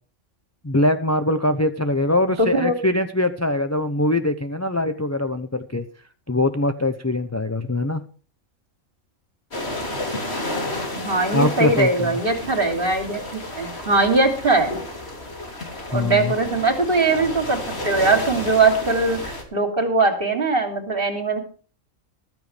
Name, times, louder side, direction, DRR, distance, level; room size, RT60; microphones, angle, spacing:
voice 1, 0.6-5.8 6.3-8.0 11.3-12.1 15.9-16.3, left 1 dB, 15° left, 8 dB, 0.7 m, -22 dB
voice 2, 2.4-2.7 10.9-13.2 13.5-14.8 15.9-17.6 17.8-21.4, right 3 dB, 40° right, 5 dB, 3.1 m, -20 dB
sound 1, 9.5-19.4, left 1 dB, 45° left, 3.3 m, -31 dB
15.0 x 13.5 x 3.4 m, 0.39 s
omnidirectional pair, 1.5 m